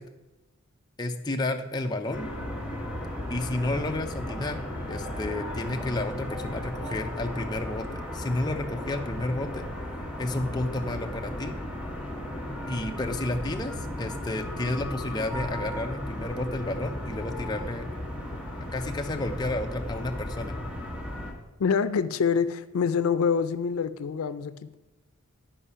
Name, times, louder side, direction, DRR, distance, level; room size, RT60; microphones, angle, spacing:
voice 1, 1.0-2.3 3.3-9.7 10.2-11.6 12.7-17.9 18.6-20.6, left 2 dB, 20° left, 4 dB, 0.5 m, -31 dB
sound 1, 2.1-21.3, left 1 dB, 5° right, 1.5 m, -35 dB
sound 2, 4.9-9.1, equal, 85° right, 1.8 m, -47 dB
voice 2, 21.6-24.8, left 6 dB, 85° left, 13 dB, 0.4 m, -26 dB
10.0 x 4.8 x 5.6 m, 1.1 s
head